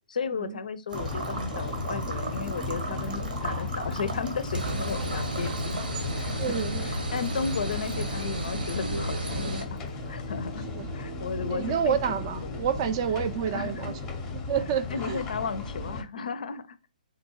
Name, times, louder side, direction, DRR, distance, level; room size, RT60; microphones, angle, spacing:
voice 1, 0.1-5.8 6.1-9.8 10.1-10.6 10.9-12.6 13.4-13.8 14.9-16.9, left 5 dB, 65° left, 0.4 m, -34 dB
sound 1, 0.9-16.0, left 3 dB, 15° left, 0.6 m, -36 dB
sound 2, 0.9-10.7, right 3 dB, 70° right, 0.8 m, -40 dB
voice 2, 3.2-3.6 6.2-6.9 10.7-10.9 11.5-13.9 14.3-15.2, right 8 dB, 35° right, 0.3 m, -29 dB
sound 3, 4.5-9.6, right 1 dB, 85° right, 1.1 m, -32 dB
3.6 x 2.2 x 2.9 m
hypercardioid pair, 140°, 5 cm